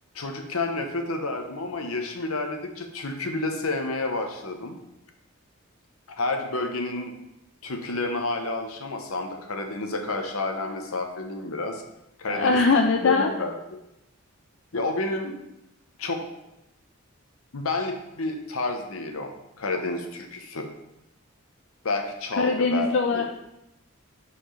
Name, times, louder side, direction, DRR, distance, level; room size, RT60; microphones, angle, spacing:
voice 1, 0.1-4.8 6.1-7.1 7.6-11.8 12.2-12.6 13.0-13.5 14.7-15.4 16.0-16.2 17.5-19.3 19.6-20.7 21.8-23.3, left 2 dB, 80° left, 4 dB, 1.0 m, -30 dB
voice 2, 12.2-13.3 22.4-23.3, left 4 dB, 55° left, 3 dB, 0.4 m, -22 dB
5.1 x 4.2 x 5.6 m, 0.88 s
head